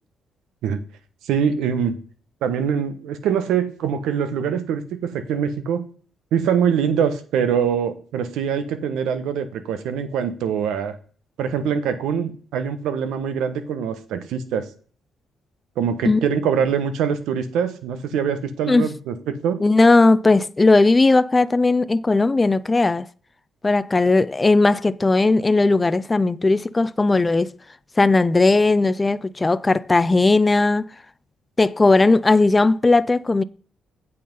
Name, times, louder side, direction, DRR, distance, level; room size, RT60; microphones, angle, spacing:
voice 1, 1.2-2.0 2.4-5.8 6.3-11.0 11.4-14.7 15.8-19.6, right 7 dB, 85° right, 1.1 m, -23 dB
voice 2, 19.6-23.1 23.6-27.5 28.0-30.9 31.6-33.4, left 3 dB, 20° left, 0.4 m, -17 dB
8.5 x 5.5 x 5.3 m
cardioid pair, 90°, 0 cm